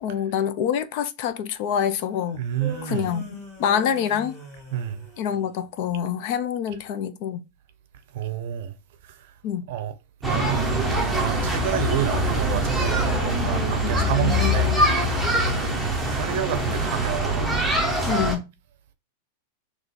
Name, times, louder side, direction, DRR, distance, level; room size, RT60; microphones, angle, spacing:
voice 1, 0.0-2.4 2.8-4.4 5.2-7.4 9.4-9.7 13.8-14.5 18.1-18.5, left 8 dB, 40° left, 0.4 m, -26 dB
sound 1, 2.3-5.6 12.7-15.7, equal, 15° left, 1.5 m, -40 dB
voice 2, 2.4-3.1 4.7-5.0 8.1-8.7 9.7-9.9 10.2-10.8 11.1-14.7 15.8-17.9, right 10 dB, 50° right, 0.6 m, -29 dB
sound 2, 10.2-18.4, equal, ahead, 0.7 m, -23 dB
3.7 x 2.9 x 4.0 m
supercardioid pair, 175°, 0 cm